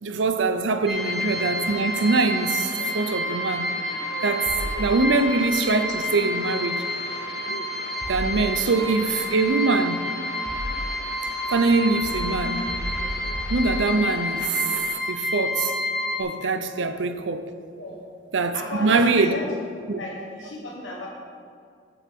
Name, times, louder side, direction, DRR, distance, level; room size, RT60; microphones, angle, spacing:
voice 1, 0.0-3.7 4.2-6.8 8.1-10.1 11.5-12.8 13.5-14.6 15.1-15.8 16.2-17.5 18.3-19.4 19.9-20.0, right 3 dB, 75° right, 0.6 m, -23 dB
sound 1, 0.9-15.0, left 4 dB, 60° left, 0.6 m, -39 dB
sound 2, 0.9-16.2, left 1 dB, ahead, 0.9 m, -29 dB
sound 3, 4.5-5.3 8.0-8.9 9.8-11.1 12.0-14.2, right 1 dB, 35° right, 1.4 m, -34 dB
voice 2, 18.5-21.1, left 2 dB, 80° left, 1.2 m, -34 dB
13.0 x 7.0 x 3.6 m
head